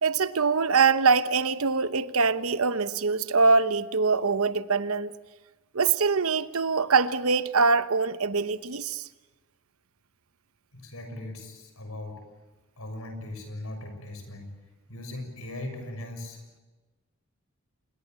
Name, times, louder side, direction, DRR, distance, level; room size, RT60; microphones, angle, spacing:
voice 1, 0.0-5.1 5.7-9.1, right 4 dB, 80° right, 1.0 m, -23 dB
voice 2, 10.7-12.2 12.8-14.5 14.9-16.4, left 1 dB, 85° left, 6.4 m, -39 dB
27.0 x 21.5 x 7.7 m
head